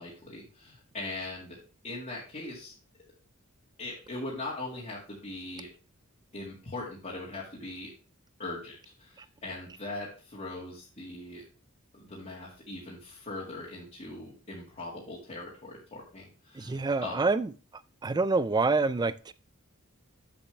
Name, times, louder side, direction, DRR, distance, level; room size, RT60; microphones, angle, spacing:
voice 1, 0.0-1.6 1.8-2.7 3.8-5.7 6.3-7.9 8.4-11.4 11.9-17.2, left 2 dB, 35° left, -6 dB, 1.9 m, -40 dB
voice 2, 16.6-17.5 18.0-19.3, right 3 dB, 20° right, 16 dB, 0.3 m, -27 dB
7.2 x 7.0 x 3.3 m, 0.35 s
head